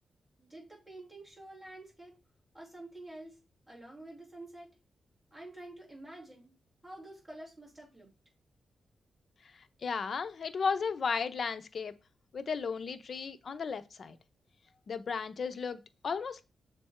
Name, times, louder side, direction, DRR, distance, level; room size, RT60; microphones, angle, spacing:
voice 1, 0.4-2.1 2.5-3.4 3.7-4.7 5.3-6.5 6.8-8.1, right 1 dB, 5° right, 3.4 m, -48 dB
voice 2, 9.8-11.9 12.3-14.2 14.9-16.4, left 5 dB, 50° left, 0.6 m, -34 dB
7.2 x 3.4 x 4.3 m
wide cardioid pair, 135°, 0 cm